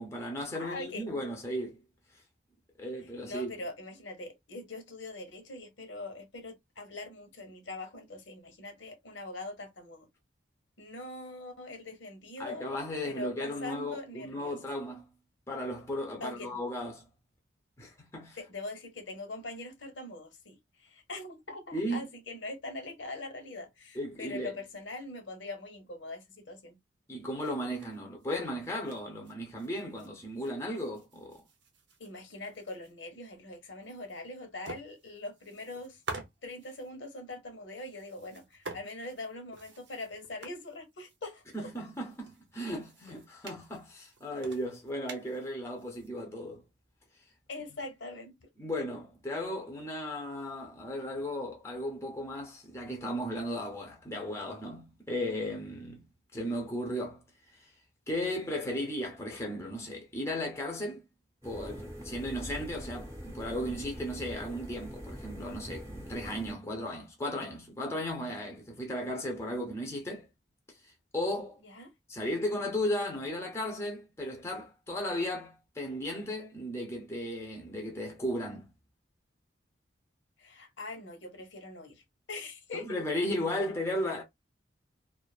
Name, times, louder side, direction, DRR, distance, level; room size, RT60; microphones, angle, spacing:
voice 1, 0.0-1.8 2.8-3.5 12.4-15.1 15.5-17.0 17.8-18.4 21.7-22.1 23.9-24.5 27.1-31.4 41.5-46.6 48.6-56.0 56.3-57.2 57.5-57.7 58.1-61.1 61.4-70.3 70.8-71.6 72.1-78.7 82.7-84.2, left 1 dB, 15° left, 0.6 m, -35 dB
voice 2, 0.5-1.1 3.2-10.1 10.8-12.8 13.0-14.6 16.2-16.5 18.3-26.8 32.0-41.7 47.5-48.5 71.6-71.9 80.4-82.0 82.3-83.0, left 2 dB, 85° left, 0.9 m, -42 dB
sound 1, 27.4-30.1 30.4-33.0 33.4-33.5 33.8-34.3 34.6-36.9 37.9-46.1, right 3 dB, 75° right, 0.7 m, -48 dB
sound 2, 61.4-66.5, equal, 15° right, 0.8 m, -43 dB
2.4 x 2.4 x 2.3 m
head